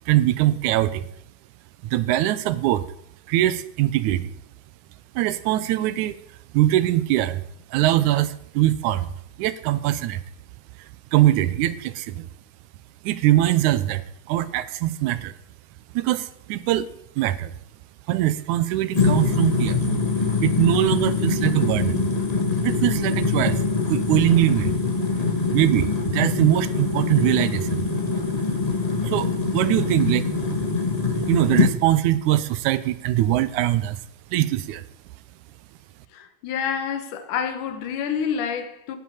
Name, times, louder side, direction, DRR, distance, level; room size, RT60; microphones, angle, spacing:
voice 1, 0.1-1.0 1.9-2.8 3.3-4.3 5.2-6.2 6.5-7.4 7.7-9.1 9.4-10.2 11.1-12.3 13.0-15.3 15.9-16.9 17.2-17.5 18.1-19.8 20.4-22.1 22.6-23.6 23.9-24.7 25.5-27.9 29.0-30.3 31.3-34.0 34.3-34.8, right 14 dB, 80° right, 2.1 m, -22 dB
sound 1, 18.9-31.7, left 4 dB, 40° left, 0.5 m, -23 dB
voice 2, 36.1-39.0, left 7 dB, 85° left, 2.7 m, -28 dB
10.5 x 7.7 x 8.6 m
omnidirectional pair, 3.5 m